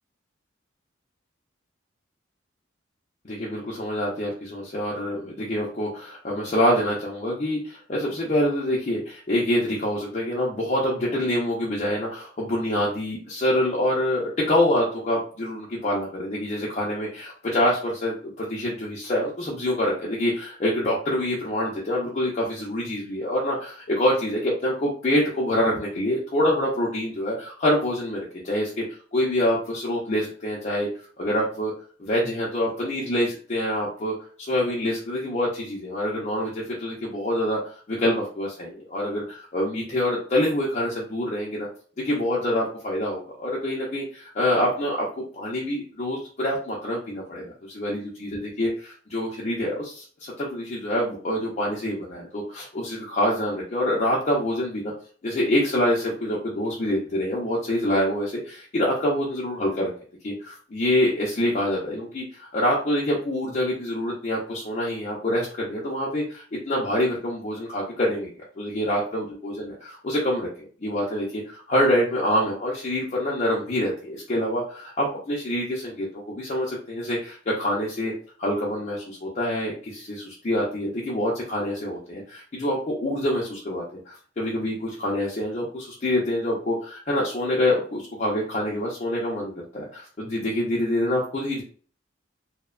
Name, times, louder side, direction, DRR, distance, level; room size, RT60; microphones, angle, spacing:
voice 1, 3.2-28.8 29.1-30.9 31.2-31.7 32.0-41.7 42.0-45.1 45.3-54.9 55.2-59.9 60.2-78.1 78.4-91.6, left 1 dB, 40° left, -5 dB, 0.5 m, -26 dB
2.6 x 2.1 x 2.3 m, 0.43 s
head